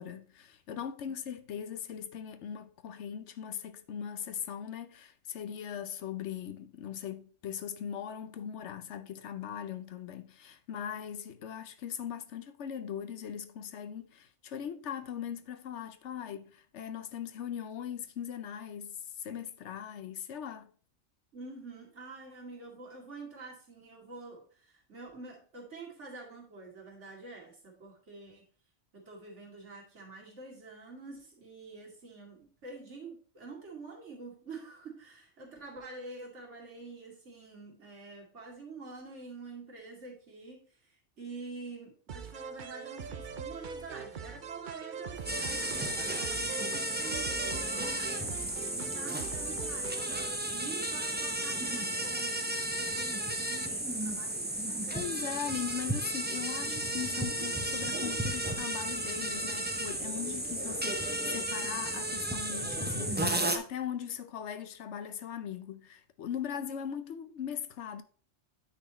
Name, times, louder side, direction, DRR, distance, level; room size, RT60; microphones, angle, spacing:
voice 1, 0.0-20.7 54.9-68.0, left 9 dB, 70° left, 0.9 m, -40 dB
voice 2, 21.3-28.5 28.9-48.2 48.7-55.4 66.6-66.7, right 3 dB, 65° right, 2.7 m, -47 dB
sound 1, 42.1-50.4, right 6 dB, 50° right, 0.7 m, -42 dB
sound 2, 45.3-63.6, right 1 dB, 10° right, 0.6 m, -33 dB
9.2 x 4.3 x 4.1 m
omnidirectional pair, 1.3 m